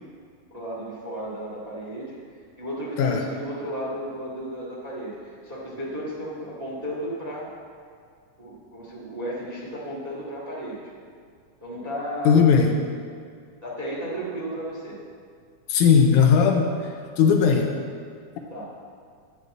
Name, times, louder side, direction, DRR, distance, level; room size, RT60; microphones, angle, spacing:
voice 1, 0.5-2.2 2.6-7.5 8.4-10.8 11.6-12.4 13.6-15.0 18.5-18.7, equal, 15° right, -5 dB, 1.5 m, -34 dB
voice 2, 12.3-12.7 15.7-17.8, left 6 dB, 75° left, 3 dB, 2.1 m, -18 dB
11.0 x 5.4 x 8.4 m, 2.1 s
omnidirectional pair, 3.7 m